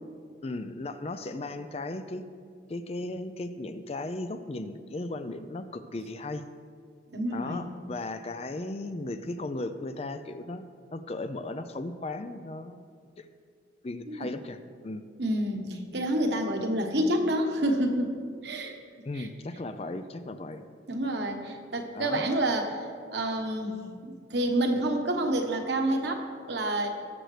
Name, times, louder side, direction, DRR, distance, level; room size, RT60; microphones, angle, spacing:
voice 1, 0.4-2.2 2.7-6.4 7.3-10.6 10.9-12.8 13.2-13.3 13.8-15.0 19.0-20.7 21.9-22.3, left 2 dB, 35° left, 10 dB, 0.5 m, -36 dB
voice 2, 7.1-7.6 14.1-14.3 15.2-18.7 19.1-19.3 20.9-26.9, right 1 dB, 60° right, 4 dB, 1.2 m, -28 dB
19.0 x 7.9 x 3.3 m, 2.1 s
head